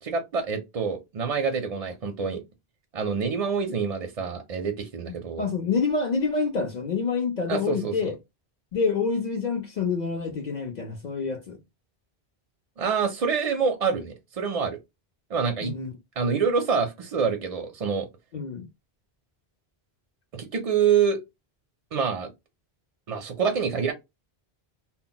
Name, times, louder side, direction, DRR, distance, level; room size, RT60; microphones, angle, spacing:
voice 1, 0.0-2.4 2.9-5.4 7.5-8.1 12.8-14.8 15.3-15.7 16.2-18.1 20.3-21.2 21.9-22.3 23.1-23.9, right 6 dB, 50° right, 0.5 m, -26 dB
voice 2, 5.4-8.1 8.7-11.6 15.6-15.9 18.3-18.7, left 5 dB, 55° left, 0.6 m, -27 dB
2.1 x 2.1 x 3.8 m
omnidirectional pair, 1.0 m